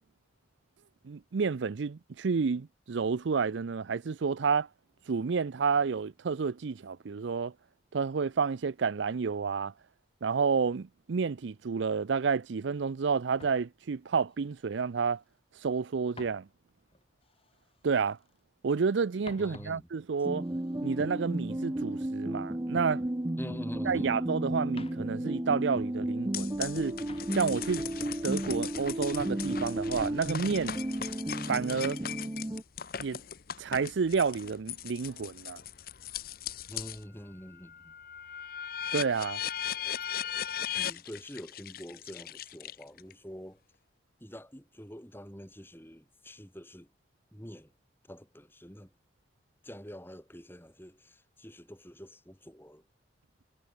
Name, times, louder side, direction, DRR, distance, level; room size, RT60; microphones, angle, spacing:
voice 1, 1.0-4.7 5.1-7.5 7.9-9.7 10.2-15.2 15.6-16.5 17.8-18.2 18.6-20.5 20.8-23.0 23.9-27.0 27.3-27.9 28.2-30.8 31.5-32.0 33.0-33.2 33.6-35.6 38.9-39.4, right 5 dB, 80° right, 0.5 m, -30 dB
sound 1, 13.3-15.4 15.7-18.5 18.8-23.0 23.3-24.2 24.6-26.4 26.8-27.7 28.0-28.7 29.1-29.4, left 3 dB, 30° left, 5.5 m, -56 dB
voice 2, 19.4-19.9 23.4-24.2 36.7-37.9 40.7-43.6 44.2-46.9 47.3-47.7 48.1-48.9 49.6-52.8, equal, 10° left, 6.2 m, -46 dB
sound 2, 20.2-32.6, right 1 dB, 20° right, 0.6 m, -33 dB
sound 3, 26.3-37.0 37.5-43.1, left 9 dB, 50° left, 0.8 m, -39 dB
head